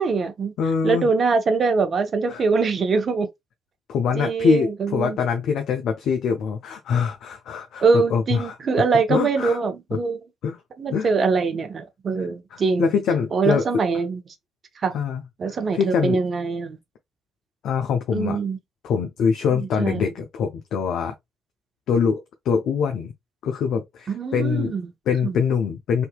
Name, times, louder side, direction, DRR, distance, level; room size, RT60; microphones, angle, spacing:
voice 1, 0.0-0.5 0.8-3.3 4.1-5.2 7.8-10.2 10.8-12.9 13.3-14.2 14.8-15.0 15.4-16.8 18.1-18.6 19.5-20.1 24.1-24.9 25.2-25.4, right 4 dB, 45° right, 0.7 m, -23 dB
voice 2, 0.6-1.1 2.3-2.4 3.9-8.5 9.1-9.6 10.4-10.6 10.9-11.1 12.5-13.7 14.9-15.2 15.7-16.2 17.6-18.4 18.8-21.1 21.9-23.1 23.4-24.7 25.1-26.1, left 6 dB, 60° left, 0.4 m, -23 dB
3.5 x 2.7 x 2.2 m
figure-of-eight pair, 40°, 0 cm